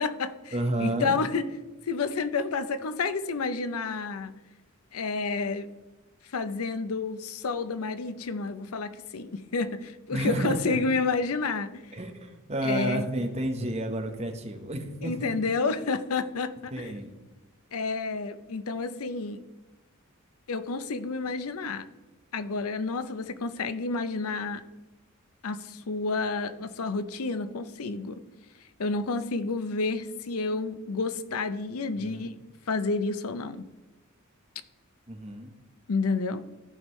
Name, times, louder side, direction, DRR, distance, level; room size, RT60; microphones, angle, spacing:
voice 1, 0.0-0.5 0.8-1.4 1.8-4.3 4.9-5.7 6.2-12.0 12.6-13.1 15.0-16.9 17.7-19.4 20.5-21.9 22.3-24.6 25.4-28.2 28.8-32.4 32.7-33.6 35.9-36.4, left 4 dB, 85° left, 12 dB, 0.6 m, -30 dB
voice 2, 0.5-1.2 10.1-10.8 11.9-15.3 16.7-17.1 32.0-32.3 35.1-35.5, right 1 dB, 30° right, 4 dB, 1.0 m, -31 dB
14.0 x 5.3 x 3.1 m, 1.1 s
head